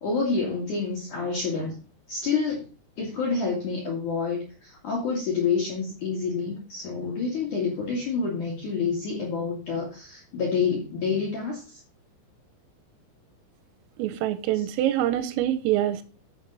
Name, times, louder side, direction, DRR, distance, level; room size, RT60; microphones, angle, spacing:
voice 1, 0.0-1.8 2.1-2.6 3.0-11.8, left 5 dB, 50° left, 2.8 m, -28 dB
voice 2, 14.0-16.0, right 12 dB, 85° right, 3.2 m, -25 dB
9.9 x 7.3 x 4.0 m
omnidirectional pair, 5.9 m